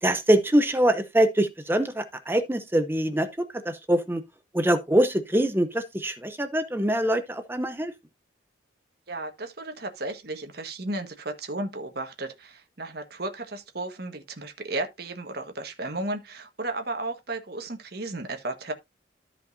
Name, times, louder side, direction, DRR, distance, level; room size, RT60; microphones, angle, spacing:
voice 1, 0.0-4.2 4.5-7.9, right 1 dB, 10° right, 0.7 m, -24 dB
voice 2, 9.1-18.7, right 2 dB, 55° right, 1.5 m, -34 dB
13.5 x 5.3 x 2.7 m
head